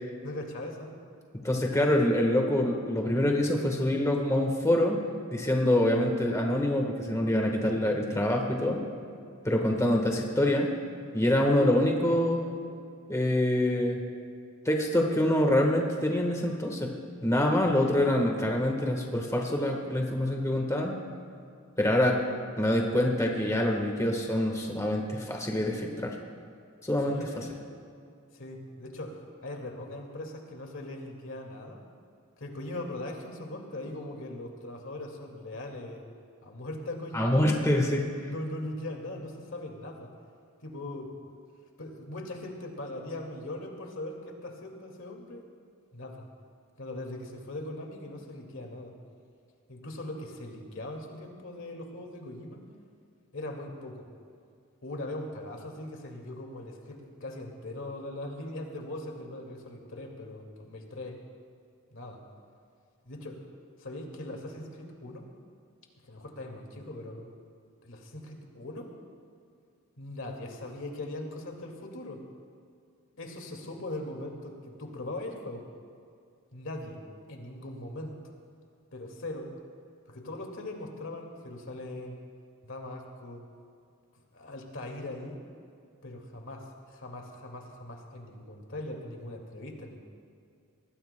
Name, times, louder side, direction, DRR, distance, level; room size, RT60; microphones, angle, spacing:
voice 1, 0.2-0.9 27.1-27.5 28.3-31.8 32.4-36.0 36.4-40.1 40.6-41.4 41.8-45.4 45.9-46.2 46.8-48.9 49.7-52.6 53.3-54.1 54.8-61.2 61.9-62.2 63.0-63.4 63.8-65.3 66.0-67.3 67.8-68.9 70.0-72.2 73.2-75.6 76.5-77.0 77.3-78.3 78.9-79.5 80.1-82.2 82.6-83.4 84.3-85.4 86.0-90.0, left 1 dB, 65° left, 2 dB, 2.1 m, -40 dB
voice 2, 1.4-5.0 5.3-8.8 9.4-10.7 11.1-12.5 13.1-14.0 14.6-16.9 17.2-21.0 21.8-22.2 22.6-26.1 26.8-27.4 37.1-38.0, left 1 dB, 15° left, 1 dB, 1.3 m, -25 dB
25.0 x 20.0 x 2.2 m, 2.4 s
head